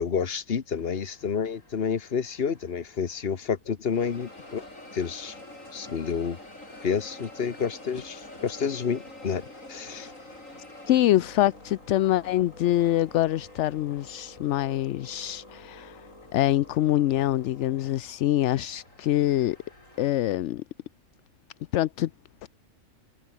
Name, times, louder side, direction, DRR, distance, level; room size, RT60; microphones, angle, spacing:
voice 1, 0.0-4.6 4.9-5.3 5.7-6.4 6.8-9.4 9.7-10.1, left 6 dB, 50° left, 1.4 m, -29 dB
sound 1, 0.7-3.5 3.9-20.1, left 1 dB, 85° left, 8.1 m, -47 dB
voice 2, 10.9-16.0 16.3-19.6 20.0-20.6 21.7-22.1 22.4-22.5, left 14 dB, 70° left, 0.8 m, -25 dB
omnidirectional pair, 1.3 m